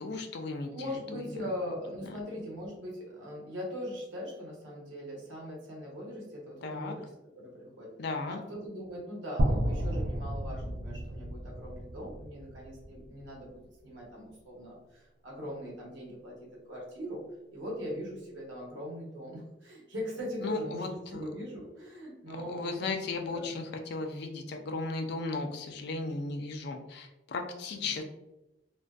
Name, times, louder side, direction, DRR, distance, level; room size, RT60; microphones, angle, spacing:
voice 1, 0.0-0.7 1.1-1.5 6.6-7.0 8.0-8.4 20.4-21.2 22.5-28.0, left 3 dB, 60° left, 4 dB, 0.4 m, -36 dB
voice 2, 0.7-7.1 7.3-7.9 8.3-17.2 17.5-20.8 21.1-22.8 23.3-23.5 27.7-28.0, equal, 85° right, -3 dB, 1.0 m, -40 dB
sound 1, 9.4-13.4, right 1 dB, 65° right, 0.3 m, -32 dB
2.5 x 2.2 x 2.3 m, 0.95 s
head